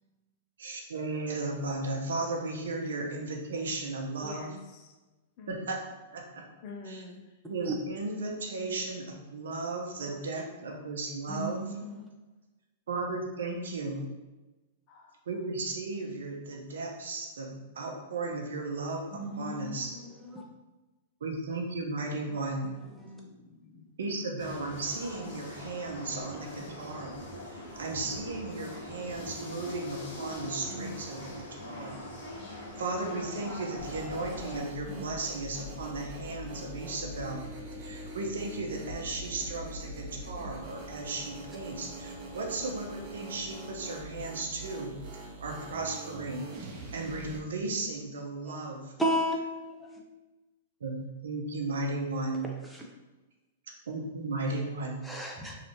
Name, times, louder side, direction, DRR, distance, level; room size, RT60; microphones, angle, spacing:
voice 1, 0.6-4.4 5.5-5.8 6.1-6.4 6.9-7.0 7.5-11.6 12.9-14.0 15.3-20.0 21.2-22.7 24.0-27.2 27.5-32.0 32.5-37.5 37.8-48.9 50.8-52.4 53.9-55.1, right 3 dB, 80° right, 1 dB, 0.7 m, -35 dB
voice 2, 4.2-4.9 5.4-5.7 6.6-7.4 10.0-10.4 14.9-15.1 22.9-24.0, left 3 dB, 45° left, 2 dB, 0.6 m, -48 dB
voice 3, 11.3-12.1 13.8-14.1 19.1-20.4 22.7-23.2 25.2-25.3 26.6-26.9 30.7-30.8 34.9-35.0 40.4-40.5 48.4-48.6 49.0-50.0 52.6-52.8 54.5-54.6 55.0-55.6, right 1 dB, ahead, -2 dB, 0.6 m, -35 dB
sound 1, 24.4-34.6, left 1 dB, 65° left, 1.3 m, -42 dB
sound 2, 33.8-47.4, equal, 35° right, 0.8 m, -43 dB
3.2 x 2.5 x 2.9 m, 1.1 s
hypercardioid pair, 125°, 0 cm